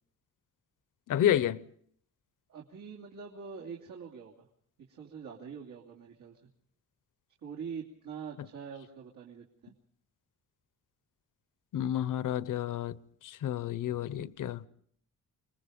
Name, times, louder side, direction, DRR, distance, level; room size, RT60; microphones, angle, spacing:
voice 1, 1.1-1.6 11.7-13.0 13.2-14.6, left 11 dB, 75° left, 0.9 m, -30 dB
voice 2, 2.5-4.5 4.9-6.5 7.4-9.7, right 6 dB, 85° right, 3.1 m, -44 dB
28.0 x 21.0 x 5.3 m
wide cardioid pair, 170°, 31 cm